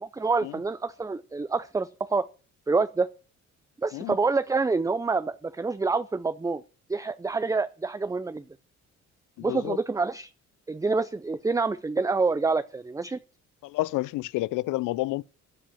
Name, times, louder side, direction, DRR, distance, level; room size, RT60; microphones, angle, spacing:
voice 1, 0.0-2.2 2.7-3.1 3.8-6.6 6.9-8.4 9.4-10.3 10.7-13.2, right 4 dB, 10° right, 0.5 m, -27 dB
voice 2, 9.4-9.8 13.6-15.2, left 18 dB, 90° left, 0.5 m, -29 dB
14.5 x 5.0 x 8.8 m
cardioid pair, 90°, 30 cm